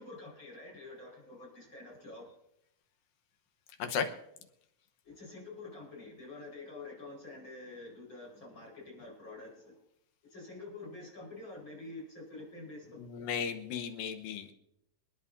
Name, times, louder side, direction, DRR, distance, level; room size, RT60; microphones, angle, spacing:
voice 1, 0.0-2.3 5.0-9.8 10.2-13.0, left 2 dB, 30° left, -2 dB, 5.6 m, -47 dB
voice 2, 13.0-14.5, left 7 dB, 75° left, 7 dB, 2.7 m, -35 dB
27.0 x 10.5 x 2.7 m, 0.77 s
omnidirectional pair, 4.2 m